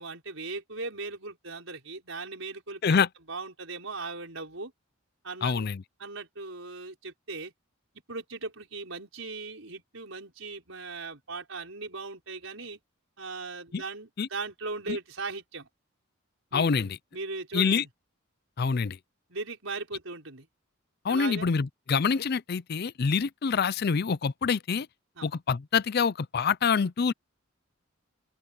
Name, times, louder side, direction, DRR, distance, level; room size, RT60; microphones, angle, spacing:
voice 1, 0.0-3.0 3.3-4.7 5.2-5.7 6.0-7.5 8.1-12.8 13.2-15.7 16.5-17.9 19.3-20.5 21.1-21.5 25.1-25.3, right 3 dB, 75° right, 5.1 m, -38 dB
voice 2, 5.4-5.8 13.7-13.8 14.2-14.3 16.5-16.9 17.5-17.8 18.6-19.0 21.0-24.9 25.2-27.1, left 5 dB, 50° left, 0.5 m, -26 dB
open air
head